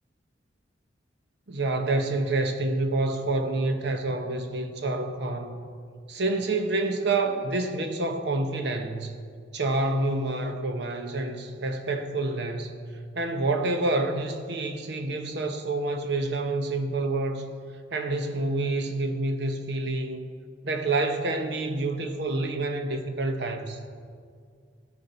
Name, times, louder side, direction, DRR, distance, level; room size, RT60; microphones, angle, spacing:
voice 1, 1.5-5.6 6.1-9.2 9.5-12.8 13.1-17.5 17.9-20.2 20.6-23.8, right 2 dB, 65° right, 1.0 m, -28 dB
16.5 x 6.9 x 4.4 m
head